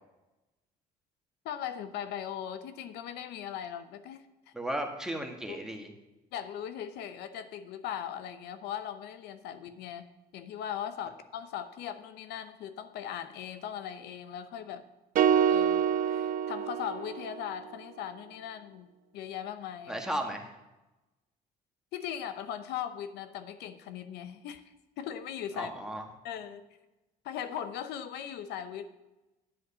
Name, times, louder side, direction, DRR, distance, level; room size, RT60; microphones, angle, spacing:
voice 1, 1.4-4.5 5.5-5.6 6.3-14.9 15.5-20.0 21.9-24.6 25.0-25.7 26.2-26.7 27.2-28.9, left 9 dB, 85° left, 10 dB, 0.8 m, -39 dB
voice 2, 4.5-5.9 19.9-20.5 25.5-26.0, right 1 dB, 5° right, 2 dB, 1.7 m, -35 dB
sound 1, 15.2-17.5, right 8 dB, 55° right, 0.6 m, -26 dB
10.0 x 7.9 x 5.6 m, 1.0 s
cardioid pair, 110°, 17 cm